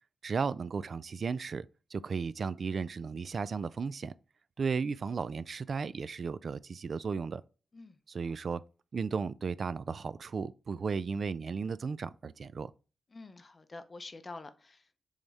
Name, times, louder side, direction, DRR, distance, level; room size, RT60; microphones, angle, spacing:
voice 1, 0.2-1.6 1.9-4.1 4.6-7.4 8.1-8.6 8.9-12.7, right 5 dB, 45° right, 0.3 m, -35 dB
voice 2, 13.1-15.0, left 3 dB, 30° left, 0.6 m, -47 dB
7.1 x 3.4 x 4.1 m
wide cardioid pair, 155°, 0 cm